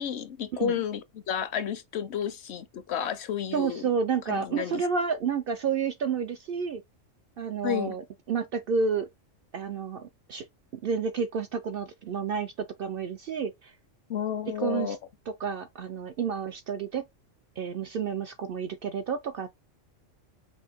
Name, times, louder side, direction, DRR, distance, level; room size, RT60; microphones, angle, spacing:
voice 1, 0.0-3.9 4.3-4.9 7.6-8.0 14.1-15.0, left 9 dB, 65° left, 0.8 m, -31 dB
voice 2, 3.5-6.8 7.4-8.0 8.3-9.1 9.5-10.4 10.7-12.5 12.8-13.7 14.6-15.0 15.4-17.0 17.6-19.5, right 6 dB, 65° right, 0.6 m, -30 dB
5.5 x 2.5 x 3.4 m
omnidirectional pair, 1.3 m